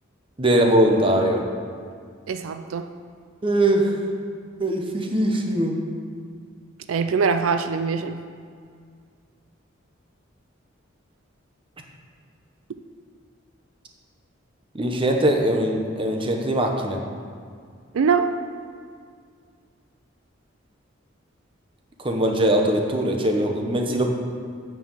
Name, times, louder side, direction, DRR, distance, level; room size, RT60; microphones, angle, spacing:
voice 1, 0.4-1.4 3.4-4.1 4.6-5.8 14.7-17.0 22.0-24.1, right 1 dB, 25° right, 2 dB, 0.9 m, -21 dB
voice 2, 2.3-2.9 6.9-8.2 17.9-18.4, right 5 dB, 85° right, 9 dB, 0.4 m, -23 dB
9.1 x 4.7 x 7.1 m, 2.1 s
head